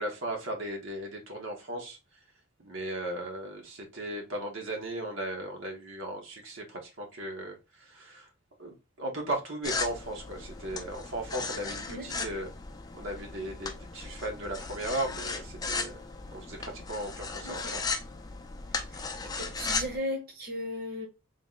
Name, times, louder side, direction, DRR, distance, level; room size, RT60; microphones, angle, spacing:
voice 1, 0.0-2.0 2.6-8.3 8.6-12.5 12.9-16.0 16.3-17.9, right 1 dB, 70° right, 1.0 m, -36 dB
sound 1, 9.6-20.0, left 4 dB, 20° left, 0.4 m, -36 dB
voice 2, 11.9-12.3 17.4-17.8 18.7-19.0 19.4-21.1, left 1 dB, 45° right, 1.0 m, -37 dB
3.6 x 2.1 x 3.7 m
head